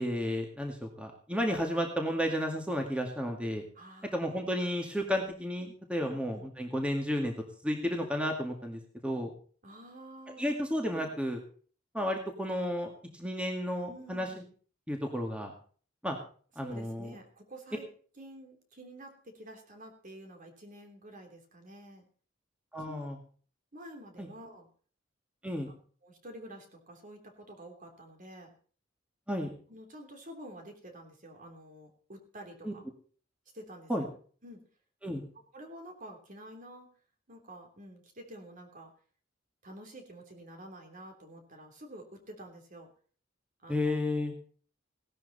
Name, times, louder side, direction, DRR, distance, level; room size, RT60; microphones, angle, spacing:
voice 1, 0.0-3.6 4.1-7.3 7.6-9.3 10.4-11.4 11.9-12.9 13.1-14.3 14.9-15.5 16.0-16.2 16.6-17.1 22.7-23.2 24.2-24.3 25.4-25.7 29.3-29.5 32.6-32.7 33.9-34.1 35.0-35.2 43.7-44.3, equal, 5° right, 2 dB, 2.0 m, -32 dB
voice 2, 3.7-4.4 5.0-5.3 6.0-6.4 9.6-10.6 10.9-11.1 13.9-14.5 16.6-17.9 18.2-22.0 22.9-23.1 23.7-24.7 26.0-28.5 29.7-32.8 33.5-34.1 34.4-34.6 35.5-36.9 37.3-38.9 39.6-42.9 43.6-44.0, right 1 dB, 45° right, 3 dB, 3.2 m, -49 dB
17.5 x 12.0 x 4.2 m, 0.43 s
head